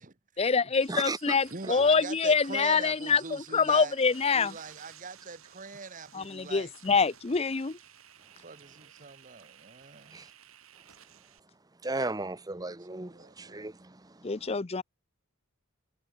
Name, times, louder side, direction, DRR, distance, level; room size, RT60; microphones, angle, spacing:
voice 1, 0.4-4.6 6.1-7.8 14.2-14.8, left 5 dB, 30° left, 0.6 m, -26 dB
sound 1, 0.7-11.4, right 10 dB, 85° right, 6.3 m, -54 dB
voice 2, 0.9-1.3 10.1-10.3 11.8-14.0, right 2 dB, 20° right, 0.9 m, -35 dB
voice 3, 1.5-3.9 4.3-6.7 8.4-10.3 12.9-13.6, right 4 dB, 40° right, 1.4 m, -43 dB
head